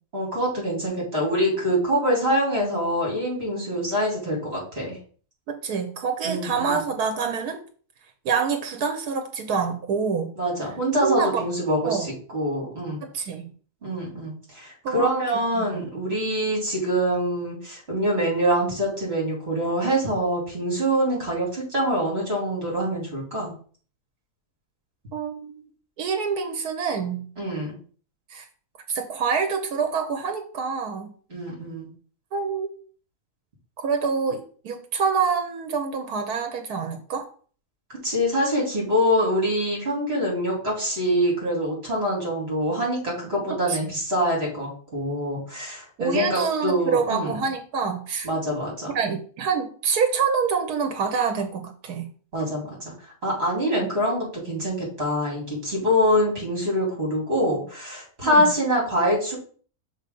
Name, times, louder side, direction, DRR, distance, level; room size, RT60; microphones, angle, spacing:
voice 1, 0.1-5.0 6.2-6.8 10.4-13.0 13.8-23.5 27.4-27.7 31.3-31.9 37.9-47.4 48.2-48.9 52.3-52.8 53.2-59.4, equal, 40° right, -2 dB, 2.9 m, -25 dB
voice 2, 5.5-7.6 8.2-10.3 11.0-11.4 11.8-12.1 13.0-13.5 14.8-15.2 15.6-15.8 25.1-25.6 26.0-27.3 28.3-28.5 28.9-31.1 32.3-32.7 33.8-37.3 43.5-43.9 46.0-48.3 48.9-52.1 53.8-53.9 58.2-58.5, right 5 dB, 85° right, 5 dB, 1.4 m, -26 dB
5.6 x 3.5 x 5.3 m, 0.43 s
omnidirectional pair, 1.6 m